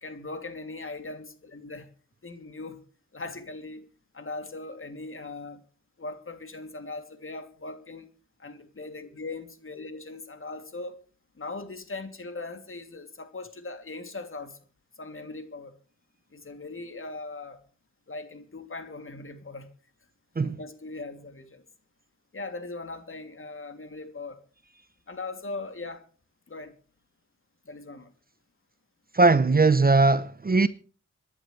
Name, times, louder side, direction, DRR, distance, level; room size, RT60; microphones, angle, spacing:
voice 1, 0.0-1.9 2.2-2.8 3.1-3.8 4.1-5.6 6.0-8.1 8.4-11.0 11.4-14.6 15.0-15.8 16.3-17.6 18.1-19.7 20.4-21.6 22.3-24.4 25.1-26.1 26.5-26.7 27.6-28.1, left 3 dB, 45° left, 2.9 m, -39 dB
voice 2, 29.1-30.7, right 3 dB, 30° right, 0.9 m, -19 dB
26.5 x 11.0 x 3.3 m
cardioid pair, 55°, 31 cm